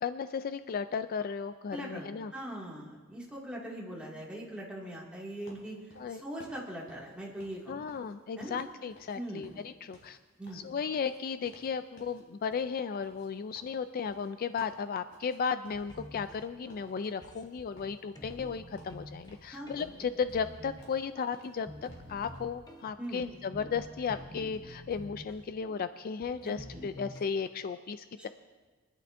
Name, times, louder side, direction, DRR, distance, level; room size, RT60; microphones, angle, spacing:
voice 1, 0.0-2.3 6.0-6.2 7.7-10.2 10.5-28.3, left 6 dB, 45° left, 11 dB, 0.3 m, -35 dB
voice 2, 1.7-2.1 2.3-7.9 8.4-8.6 9.2-9.5 10.4-10.6 19.5-19.9 23.0-23.2 26.4-26.9 28.2-28.3, right 1 dB, 5° right, -4 dB, 2.2 m, -41 dB
sound 1, 5.5-8.6 8.9-9.2 9.4-11.7 12.0-12.2 12.5-15.4 15.6-16.4 16.7-16.9 17.2-18.5 18.8-19.5 19.8-22.6, left 1 dB, 85° left, 3.2 m, -58 dB
sound 2, 15.7-27.3, left 1 dB, 20° left, 1.0 m, -49 dB
24.0 x 11.0 x 2.6 m, 1.3 s
head